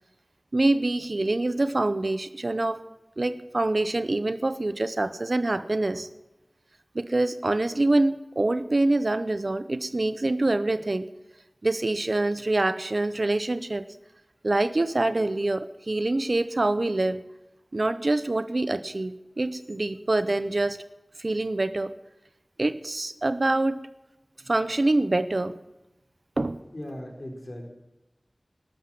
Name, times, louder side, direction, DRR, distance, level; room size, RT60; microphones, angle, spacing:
voice 1, 0.5-2.8 3.2-6.1 6.9-11.1 11.6-13.8 14.4-17.2 17.7-20.8 21.2-21.9 22.6-23.8 24.5-25.6 26.4-26.6, right 2 dB, 60° right, 14 dB, 0.8 m, -25 dB
voice 2, 26.7-27.7, left 1 dB, 50° left, 2 dB, 4.4 m, -38 dB
13.0 x 12.0 x 7.8 m, 0.96 s
wide cardioid pair, 45°, 0 cm